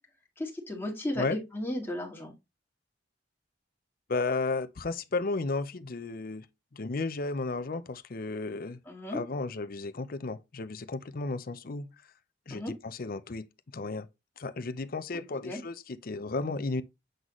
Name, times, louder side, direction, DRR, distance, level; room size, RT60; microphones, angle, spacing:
voice 1, 0.4-2.3 8.9-9.2 12.5-12.7 15.1-15.6, left 1 dB, 10° left, 2.1 m, -35 dB
voice 2, 4.1-6.4 6.7-8.8 9.1-11.9 12.5-13.5 13.7-14.1 14.4-16.8, left 3 dB, 50° left, 0.6 m, -33 dB
7.8 x 4.0 x 3.1 m
head